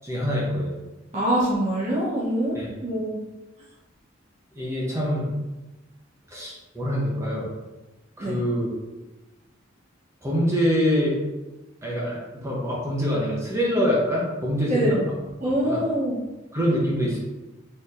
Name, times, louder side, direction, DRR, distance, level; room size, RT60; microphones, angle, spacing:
voice 1, 0.0-0.7 2.5-2.7 4.5-5.3 6.3-7.5 8.2-8.7 10.2-11.2 11.8-15.0 15.4-15.8 16.5-17.2, equal, 15° right, -4 dB, 0.8 m, -25 dB
voice 2, 1.1-2.6 2.8-3.2 8.2-8.4 14.7-15.0 15.4-16.2, right 1 dB, 40° right, -8 dB, 1.2 m, -24 dB
4.3 x 4.2 x 2.6 m, 1.1 s
head